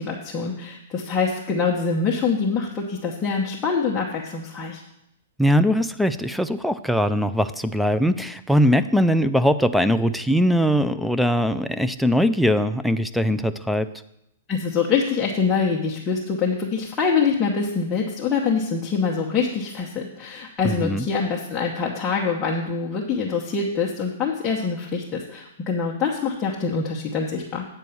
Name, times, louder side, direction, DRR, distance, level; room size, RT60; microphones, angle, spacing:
voice 1, 0.0-4.8 14.5-27.7, left 5 dB, 15° left, -3 dB, 1.0 m, -25 dB
voice 2, 5.4-13.9 20.6-21.1, equal, ahead, 12 dB, 0.3 m, -21 dB
8.7 x 4.7 x 6.9 m, 0.82 s
hypercardioid pair, 155°, 0 cm